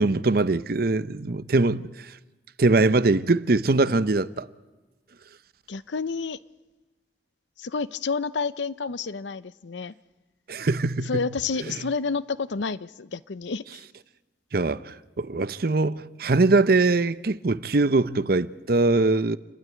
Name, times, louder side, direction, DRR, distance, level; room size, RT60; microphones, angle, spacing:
voice 1, 0.0-1.8 2.6-4.5 10.5-11.1 11.7-11.8 14.5-19.4, right 3 dB, 55° right, 0.7 m, -22 dB
voice 2, 5.7-6.4 7.6-9.9 11.0-13.8, left 4 dB, 75° left, 0.6 m, -30 dB
28.5 x 12.5 x 9.6 m
head